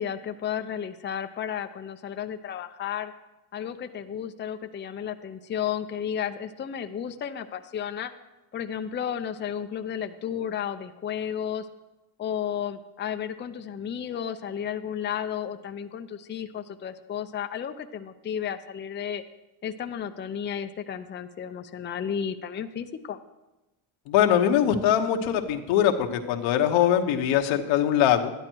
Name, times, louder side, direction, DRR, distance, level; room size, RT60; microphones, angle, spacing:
voice 1, 0.0-3.1 3.5-8.1 8.5-11.7 12.2-19.2 19.6-23.2, left 8 dB, 25° left, 8 dB, 0.6 m, -33 dB
voice 2, 24.1-28.3, left 10 dB, 85° left, 5 dB, 1.2 m, -22 dB
12.5 x 10.5 x 4.6 m, 1.0 s
cardioid pair, 105°, 46 cm